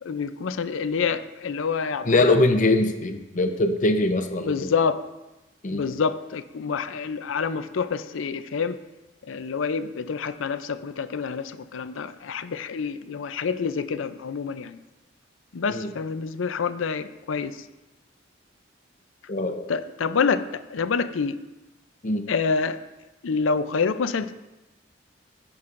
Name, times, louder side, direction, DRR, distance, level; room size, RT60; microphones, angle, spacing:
voice 1, 0.0-2.3 4.4-5.0 5.7-8.8 9.2-14.8 15.5-17.6 19.7-21.4 22.3-22.8 23.2-24.3, left 5 dB, 90° left, 13 dB, 0.5 m, -27 dB
voice 2, 2.0-4.7 5.6-5.9 15.7-15.9 19.3-19.6 22.0-22.3, left 2 dB, 40° left, 6 dB, 0.7 m, -22 dB
15.0 x 6.2 x 2.6 m, 1.0 s
head